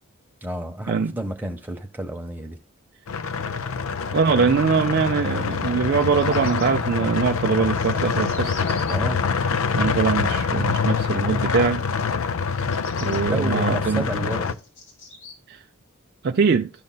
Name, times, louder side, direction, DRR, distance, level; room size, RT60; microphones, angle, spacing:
voice 1, 0.4-2.6 4.4-4.5 8.9-9.2 13.2-14.6, right 1 dB, 10° right, 0.8 m, -31 dB
sound 1, 3.1-14.5, left 5 dB, 70° left, 0.4 m, -25 dB
voice 2, 4.1-8.5 9.7-11.8 13.0-14.1 15.5-15.6 16.2-16.7, right 5 dB, 45° right, 0.3 m, -22 dB
Bird vocalization bird call bird song, 6.0-6.7 7.4-8.9 12.5-13.2 13.9-15.3, left 4 dB, 55° left, 2.7 m, -43 dB
13.0 x 5.4 x 2.2 m
head